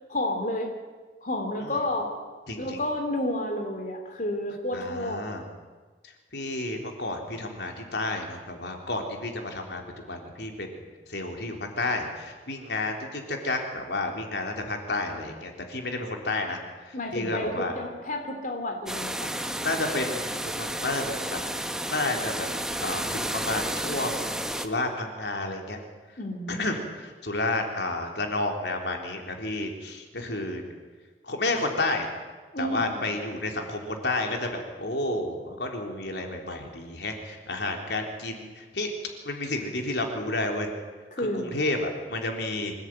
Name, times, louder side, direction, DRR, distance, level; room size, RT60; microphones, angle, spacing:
voice 1, 0.1-0.7 1.2-2.1 2.6-5.2 16.9-19.4 26.2-26.8 32.5-32.9 41.1-41.5, left 1 dB, 45° left, 3 dB, 3.2 m, -30 dB
voice 2, 2.5-2.8 4.7-5.4 6.3-10.8 11.1-16.6 16.9-17.7 19.6-21.4 21.9-22.5 22.8-25.8 26.5-30.6 31.2-32.1 32.6-38.9 39.2-40.7 41.2-42.7, left 2 dB, 70° left, 3 dB, 3.9 m, -31 dB
sound 1, 18.9-24.7, right 1 dB, 5° right, 1.3 m, -31 dB
25.5 x 17.5 x 9.3 m, 1.4 s
head